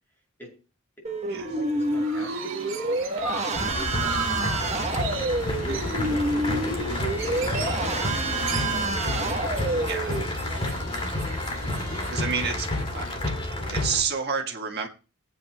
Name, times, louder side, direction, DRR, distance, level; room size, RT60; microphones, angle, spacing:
voice 1, 0.1-0.5 1.5-7.5, equal, 10° left, -2 dB, 6.7 m, -48 dB
sound 1, 1.0-10.2, right 2 dB, 35° right, 1.1 m, -28 dB
Chirp tweet, 1.6-12.2, right 4 dB, 70° right, 1.9 m, -38 dB
sound 2, 3.5-14.0, left 1 dB, 30° left, 2.3 m, -30 dB
voice 2, 9.9-10.2 10.7-10.8 11.8-13.0 13.6-14.9, right 6 dB, 55° right, 3 dB, 1.5 m, -30 dB
21.5 x 8.8 x 2.2 m, 0.34 s
head